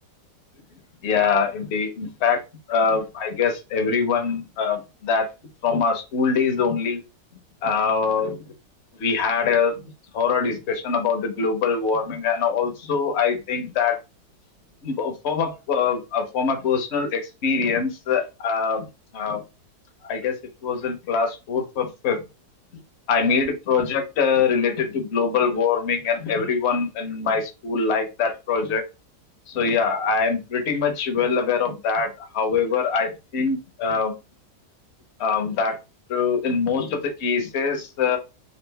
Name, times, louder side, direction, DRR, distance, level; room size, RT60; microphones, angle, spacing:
voice 1, 1.0-2.4 2.7-5.3 5.6-7.0 7.6-8.4 9.0-9.7 10.1-14.0 14.8-18.9 19.1-19.4 20.1-20.3 20.6-22.2 23.1-28.8 29.5-34.1 35.2-35.8 36.1-38.2, left 5 dB, 50° left, 4 dB, 0.9 m, -23 dB
4.3 x 2.4 x 3.4 m, 0.27 s
omnidirectional pair, 1.9 m